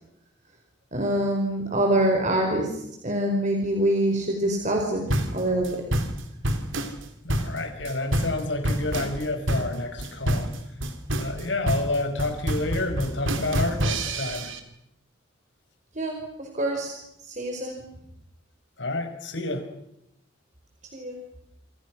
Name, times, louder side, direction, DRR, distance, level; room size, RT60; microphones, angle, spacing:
voice 1, 0.9-2.7 3.0-5.7 15.9-16.9 17.3-17.8 20.9-21.2, right 1 dB, 35° right, 2 dB, 4.9 m, -25 dB
sound 1, 5.1-14.6, right 1 dB, 75° right, 3.3 m, -27 dB
voice 2, 7.2-10.5 11.2-14.5 18.8-19.7, left 2 dB, 65° left, 6 dB, 5.5 m, -29 dB
28.0 x 27.5 x 6.3 m, 0.80 s
head